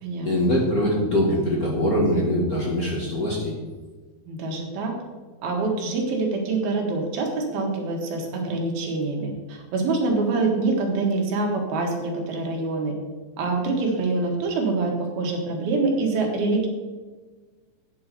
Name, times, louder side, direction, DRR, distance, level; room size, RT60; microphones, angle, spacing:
voice 1, 0.2-3.5, equal, 40° left, -3 dB, 1.4 m, -22 dB
voice 2, 4.3-4.9 5.4-13.0 13.4-16.7, right 3 dB, 85° right, 1 dB, 3.6 m, -25 dB
9.5 x 6.9 x 6.7 m, 1.4 s
omnidirectional pair, 4.2 m